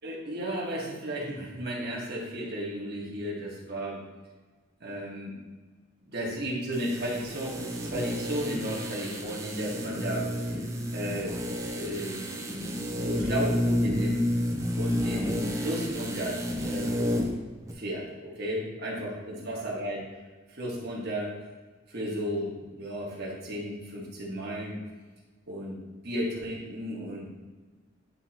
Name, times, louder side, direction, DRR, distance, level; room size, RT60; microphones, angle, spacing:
voice 1, 0.0-4.0 4.8-5.4 6.0-10.6 10.9-11.4 11.7-14.3 14.8-17.1 17.7-20.0 20.5-21.3 21.9-24.8 25.5-25.8 26.0-27.3, equal, 50° right, -4 dB, 1.6 m, -34 dB
sound 1, 6.7-17.4 17.7-17.8, equal, 15° right, 0.6 m, -31 dB
9.7 x 3.7 x 2.9 m, 1.3 s
head